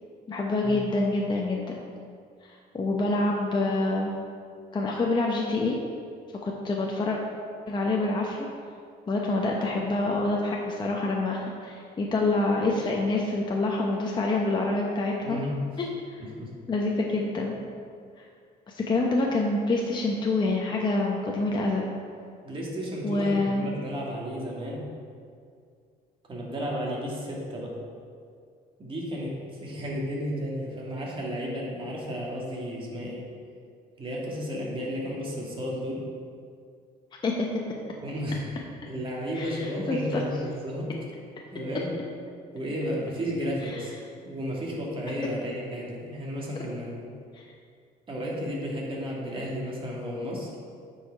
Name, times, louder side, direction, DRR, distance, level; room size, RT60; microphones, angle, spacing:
voice 1, 0.3-1.8 2.4-4.1 4.7-5.8 6.4-7.2 7.7-8.5 9.1-15.4 15.8-16.2 16.7-17.5 18.2-18.3 18.7-21.8 23.0-23.7 37.2-37.5 39.3-40.2 43.7-43.8 47.3-47.4, left 2 dB, 25° left, -1 dB, 0.8 m, -27 dB
voice 2, 15.2-15.5 16.2-16.5 22.4-24.9 26.3-27.8 28.8-33.3 34.0-36.1 38.0-38.6 38.8-40.9 41.5-41.9 42.5-44.0 44.2-47.0 48.1-50.5, equal, 30° right, -3 dB, 2.0 m, -33 dB
9.3 x 4.9 x 4.6 m, 2.2 s
cardioid pair, 110°, 17 cm